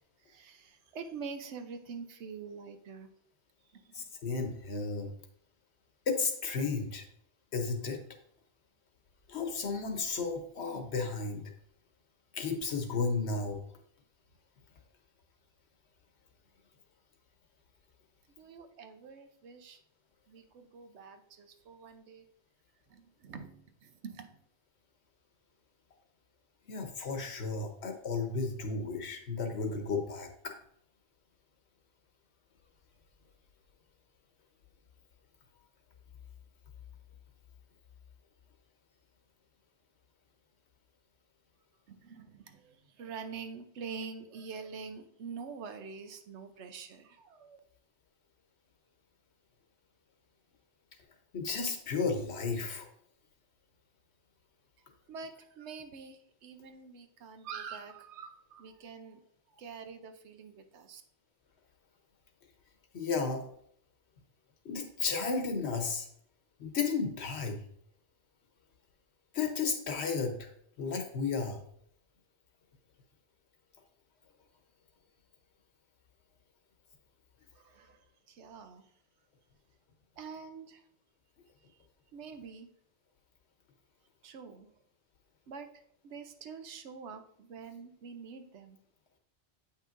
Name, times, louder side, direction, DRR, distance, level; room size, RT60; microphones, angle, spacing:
voice 1, 0.0-3.1 3.7-4.1 18.4-19.8 20.3-22.3 22.9-24.4 41.9-47.6 55.1-59.2 59.5-61.0 77.5-78.9 80.2-80.8 81.7-81.8 82.1-82.7 84.2-84.8 85.5-88.8, right 5 dB, 75° right, 8 dB, 1.0 m, -46 dB
voice 2, 3.9-5.1 6.1-7.0 7.5-8.0 9.3-11.4 12.3-13.6 26.7-30.5 51.3-52.9 62.9-63.4 64.6-66.1 66.6-67.6 69.3-70.5 70.8-71.6, left 4 dB, 70° left, 4 dB, 1.2 m, -33 dB
8.2 x 5.7 x 2.5 m, 0.66 s
omnidirectional pair, 1.2 m